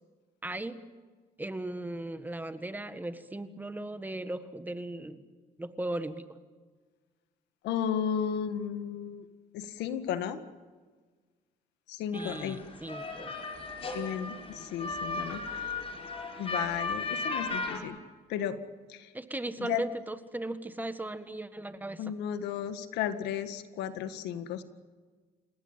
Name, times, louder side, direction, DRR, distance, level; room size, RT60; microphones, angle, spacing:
voice 1, 0.4-0.8 1.4-5.2 5.6-6.3 12.1-13.4 19.1-22.0, right 1 dB, 10° right, 10 dB, 1.7 m, -37 dB
voice 2, 7.6-9.3 9.5-10.4 11.9-12.6 13.9-15.7 16.4-18.0 18.3-18.6 18.9-19.1 19.6-19.8 22.0-24.6, left 9 dB, 90° left, 10 dB, 1.8 m, -34 dB
sound 1, 12.1-17.8, left 3 dB, 35° left, 5.0 m, -36 dB
29.0 x 17.5 x 9.0 m, 1.4 s
cardioid pair, 110°, 17 cm